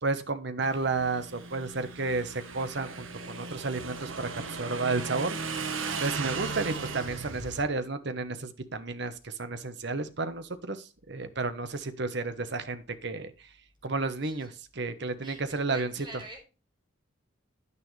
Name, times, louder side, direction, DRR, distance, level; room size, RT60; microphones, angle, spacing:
voice 1, 0.0-5.3 6.0-13.3 13.8-15.9, right 3 dB, 60° right, 11 dB, 1.1 m, -32 dB
Motorcycle / Engine, 0.6-7.6, right 4 dB, 80° right, 1.4 m, -37 dB
voice 2, 14.2-14.6 15.2-16.4, right 2 dB, 25° right, 0 dB, 5.6 m, -46 dB
9.7 x 9.6 x 3.3 m, 0.32 s
head